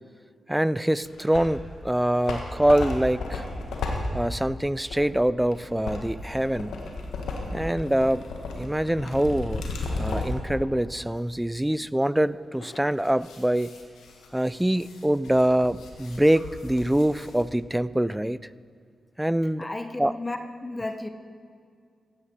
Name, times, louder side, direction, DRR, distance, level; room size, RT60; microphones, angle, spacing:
voice 1, 0.5-3.4 4.1-6.7 7.5-8.2 8.6-9.6 10.0-13.7 14.3-18.4 19.2-19.7 20.0-20.1, right 1 dB, 10° right, 18 dB, 0.4 m, -24 dB
sound 1, 1.0-1.7 2.0-10.5 11.0-11.1 12.6-17.4, left 3 dB, 85° left, 1.5 m, -35 dB
voice 2, 19.6-21.1, left 2 dB, 30° left, 7 dB, 0.9 m, -33 dB
15.5 x 10.5 x 4.3 m, 2.2 s
supercardioid pair, 45°, 0 cm